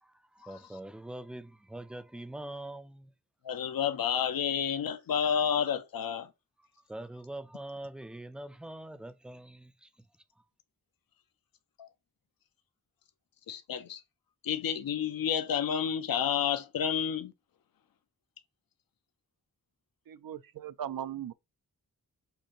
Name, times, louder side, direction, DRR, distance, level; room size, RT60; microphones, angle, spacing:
voice 1, 0.0-3.1 6.9-9.9, right 1 dB, 5° right, 0.4 m, -43 dB
voice 2, 3.4-6.3 11.8-11.9 13.5-14.0 14.4-17.3, left 8 dB, 70° left, 0.6 m, -30 dB
voice 3, 20.1-21.3, right 10 dB, 70° right, 0.5 m, -38 dB
6.6 x 2.5 x 2.9 m
wide cardioid pair, 100°, 36 cm